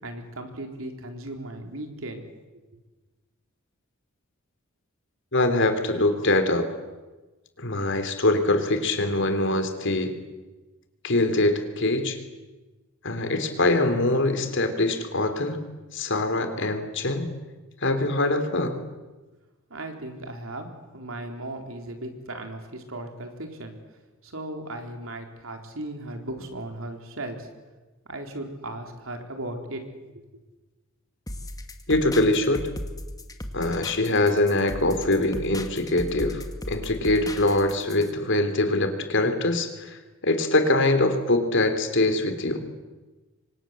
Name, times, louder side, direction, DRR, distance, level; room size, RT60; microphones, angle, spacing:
voice 1, 0.0-2.3 19.7-23.8 24.2-27.5 28.1-29.9 30.1-30.3, right 1 dB, 75° right, 5 dB, 4.1 m, -36 dB
voice 2, 5.3-6.7 7.6-10.2 11.0-12.2 13.0-15.6 15.9-17.3 17.8-18.8 31.9-32.7 33.5-42.7, left 2 dB, 60° left, 8 dB, 3.5 m, -23 dB
sound 1, 31.3-38.1, left 1 dB, 20° left, 2.0 m, -37 dB
28.5 x 24.5 x 7.8 m, 1.2 s
head